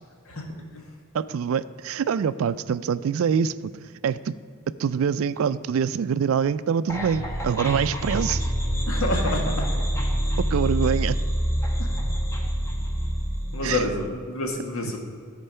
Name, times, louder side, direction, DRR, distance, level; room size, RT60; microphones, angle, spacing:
voice 1, 1.1-3.5 4.0-4.3 4.8-8.4 10.5-11.2 13.6-13.8 14.8-15.0, right 7 dB, 75° right, 16 dB, 0.3 m, -25 dB
sound 1, 6.9-14.1, equal, 15° left, 0.9 m, -26 dB
voice 2, 8.9-9.7 11.8-11.9 13.5-15.0, left 1 dB, 80° left, 2 dB, 1.5 m, -28 dB
13.0 x 4.5 x 5.6 m, 2.1 s
head